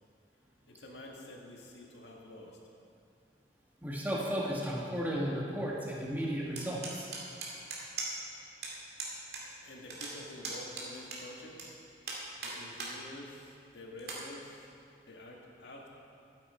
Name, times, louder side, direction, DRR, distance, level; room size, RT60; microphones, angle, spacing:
voice 1, 0.7-2.6 9.6-11.6 12.4-14.7 15.0-15.9, left 1 dB, 85° left, -1 dB, 1.9 m, -48 dB
voice 2, 3.8-7.1, equal, 10° right, -4 dB, 1.6 m, -34 dB
sound 1, 6.6-8.3 8.6-8.7 9.0-9.4 9.7-11.6 12.0-12.9 13.4-13.5 14.0-14.2, right 4 dB, 65° right, 2.3 m, -39 dB
12.5 x 10.0 x 4.4 m, 2.5 s
head